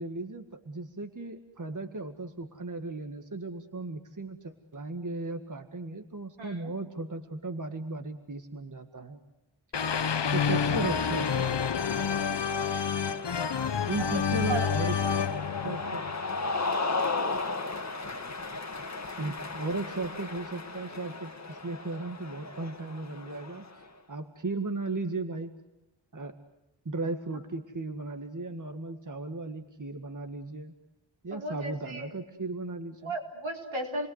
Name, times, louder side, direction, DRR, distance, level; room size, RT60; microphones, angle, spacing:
voice 1, 0.0-9.2 10.3-11.6 13.9-15.0 15.6-16.0 19.2-23.7 24.1-25.5 26.1-26.4 26.9-30.7 31.2-33.1, right 2 dB, 40° right, 6 dB, 2.0 m, -36 dB
voice 2, 6.4-6.7 10.3-10.4 12.6-13.1 14.0-14.1 14.5-14.9 31.3-32.1 33.0-34.1, right 1 dB, 80° right, 1 dB, 5.0 m, -36 dB
sound 1, 9.7-16.7, left 7 dB, 65° left, 1.1 m, -29 dB
Cheering, 10.4-23.9, left 3 dB, 35° left, 1.9 m, -36 dB
29.5 x 22.0 x 8.1 m, 0.92 s
wide cardioid pair, 65°, 46 cm